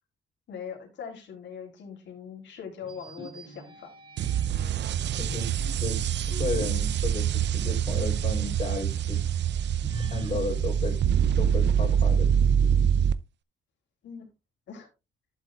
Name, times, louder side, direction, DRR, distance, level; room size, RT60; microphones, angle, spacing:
voice 1, 0.5-3.9 14.0-14.3 14.7-14.9, left 7 dB, 65° left, 1 dB, 3.5 m, -41 dB
sound 1, 2.8-4.7 5.3-8.2 8.6-8.7 9.8-11.9, right 1 dB, 25° right, 3.3 m, -43 dB
sound 2, 4.2-13.1, right 8 dB, 60° right, 0.6 m, -25 dB
voice 2, 5.2-5.5 5.8-6.0 6.3-9.2 10.1-11.0 11.4-12.8, left 3 dB, 30° left, -3 dB, 3.7 m, -33 dB
11.5 x 7.6 x 2.4 m, 0.24 s
cardioid pair, 90°, 20 cm